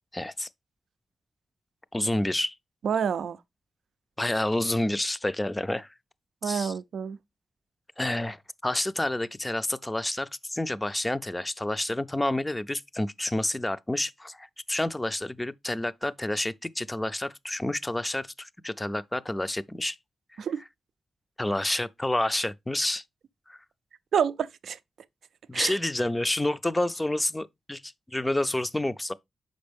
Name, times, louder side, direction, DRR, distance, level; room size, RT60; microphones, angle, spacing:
voice 1, 0.1-0.5 1.9-2.6 4.2-5.9 6.4-6.7 8.0-20.0 20.3-20.4 21.4-23.0 23.5-23.6 25.5-29.1, left 1 dB, 15° left, 0.4 m, -29 dB
voice 2, 2.8-3.4 6.4-7.2 20.4-20.6 24.1-24.8 25.5-25.8, right 7 dB, 80° right, 0.4 m, -28 dB
6.4 x 5.2 x 3.3 m
cardioid pair, 80°, 0 cm